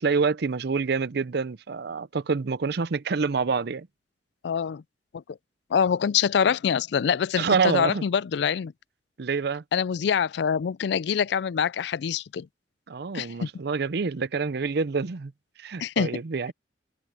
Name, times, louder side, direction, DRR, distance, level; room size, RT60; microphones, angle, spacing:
voice 1, 0.0-3.9 7.4-8.0 9.2-9.6 12.9-15.3 15.6-16.5, right 5 dB, 65° right, 0.6 m, -27 dB
voice 2, 4.4-4.8 5.7-8.7 9.7-12.5 13.1-13.5 15.8-16.1, left 7 dB, 70° left, 0.4 m, -25 dB
head